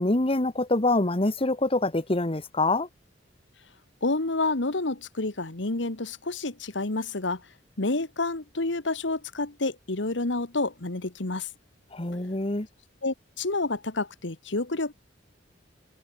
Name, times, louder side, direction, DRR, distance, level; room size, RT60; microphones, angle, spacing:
voice 1, 0.0-2.9 11.9-12.7, left 2 dB, 30° left, 1.6 m, -25 dB
voice 2, 4.0-7.4 7.8-11.5 13.0-14.9, left 2 dB, 75° left, 1.7 m, -29 dB
head